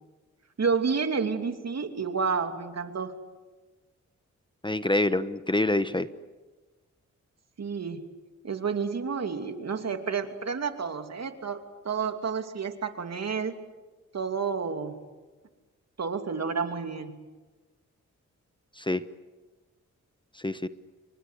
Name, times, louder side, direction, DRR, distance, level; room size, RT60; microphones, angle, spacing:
voice 1, 0.6-3.1 7.6-8.0 8.4-13.6 14.1-15.0 16.0-17.2, right 5 dB, 60° right, 7 dB, 2.8 m, -30 dB
voice 2, 4.6-6.1 18.8-19.0 20.4-20.7, left 2 dB, 15° left, 12 dB, 1.2 m, -26 dB
29.0 x 25.0 x 8.2 m, 1.2 s
cardioid pair, 65°, 30 cm